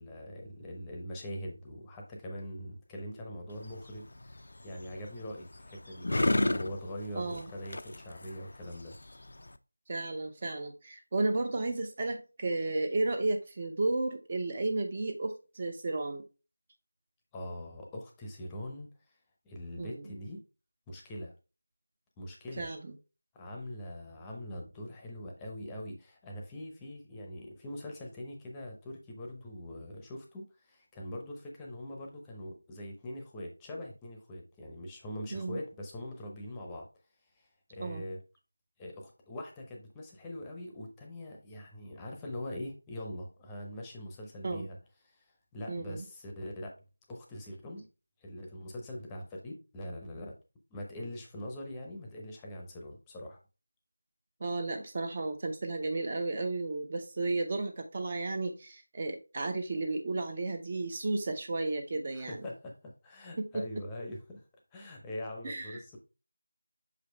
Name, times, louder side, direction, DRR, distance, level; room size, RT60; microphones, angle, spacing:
voice 1, 0.0-9.0 17.3-19.2 19.4-20.4 20.9-21.3 22.2-22.7 23.3-36.9 37.3-38.2 38.8-44.8 45.0-46.7 47.1-47.9 48.2-50.3 50.7-53.4 62.1-64.4 64.7-66.0, left 1 dB, 10° left, 0.7 m, -43 dB
sound 1, 3.5-9.6, left 2 dB, 55° left, 0.5 m, -34 dB
voice 2, 7.1-7.5 9.9-16.2 19.8-20.0 22.6-22.9 35.3-35.6 37.8-38.0 44.4-44.7 45.7-46.0 54.4-62.4 63.4-63.6 65.4-65.8, right 2 dB, 25° right, 0.6 m, -33 dB
6.3 x 5.1 x 3.2 m
figure-of-eight pair, 170°, 0 cm